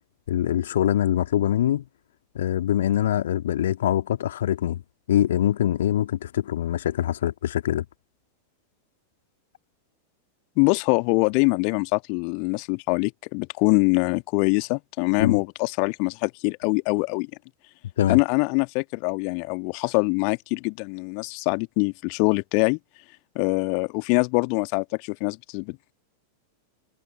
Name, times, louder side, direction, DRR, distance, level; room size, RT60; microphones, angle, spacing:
voice 1, 0.3-1.8 2.3-4.8 5.1-7.8 15.2-15.4 18.0-18.2, left 11 dB, 60° left, 2.5 m, -23 dB
voice 2, 10.6-17.3 18.1-22.8 23.3-25.9, left 40 dB or more, 45° left, 1.4 m, -24 dB
figure-of-eight pair, 90°, 0 cm